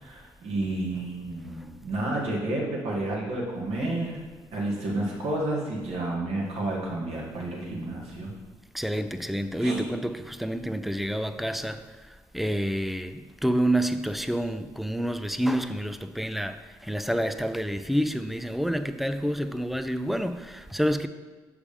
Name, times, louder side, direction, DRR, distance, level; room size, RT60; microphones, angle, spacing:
voice 1, 0.0-4.2 4.5-8.3 9.6-9.8, right 2 dB, 65° right, 2.2 m, -30 dB
voice 2, 8.7-21.1, equal, ahead, 0.5 m, -28 dB
7.1 x 4.8 x 5.2 m
hypercardioid pair, 55°, 11 cm